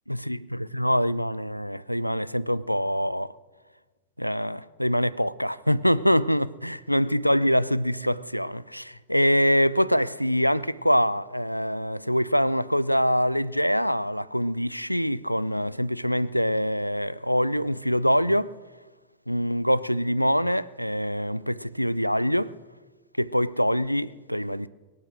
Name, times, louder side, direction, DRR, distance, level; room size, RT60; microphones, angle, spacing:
voice 1, 0.1-3.3 4.2-18.5 19.3-22.5 23.2-24.7, equal, 90° left, 0.4 m, -24 dB
23.0 x 9.3 x 6.2 m
figure-of-eight pair, 90°, 0 cm